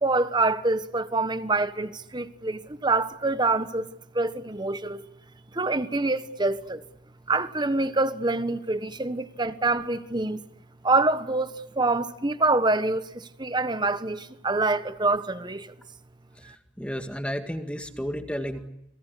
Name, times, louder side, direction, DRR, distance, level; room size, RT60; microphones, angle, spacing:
voice 1, 0.0-3.9 4.1-5.0 5.5-6.8 7.3-10.4 10.8-15.7, right 2 dB, 20° right, 1.3 m, -26 dB
voice 2, 16.4-18.7, equal, 5° left, 2.0 m, -33 dB
30.0 x 22.0 x 8.4 m
head